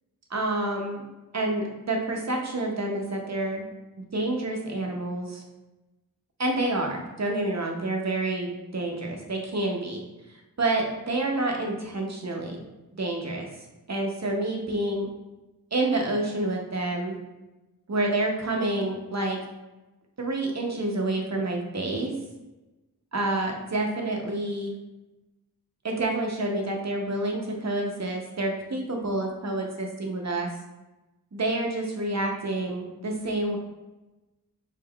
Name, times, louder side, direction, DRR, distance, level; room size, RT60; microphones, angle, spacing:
voice 1, 0.3-1.0 1.3-3.7 4.1-5.4 6.4-10.0 10.6-12.6 13.0-13.5 13.9-15.1 15.7-17.1 17.9-19.4 20.2-22.1 23.1-24.7 25.8-30.5 31.3-33.6, right 2 dB, 50° right, 1 dB, 0.7 m, -28 dB
3.6 x 3.5 x 2.3 m, 1.1 s
wide cardioid pair, 50°, 36 cm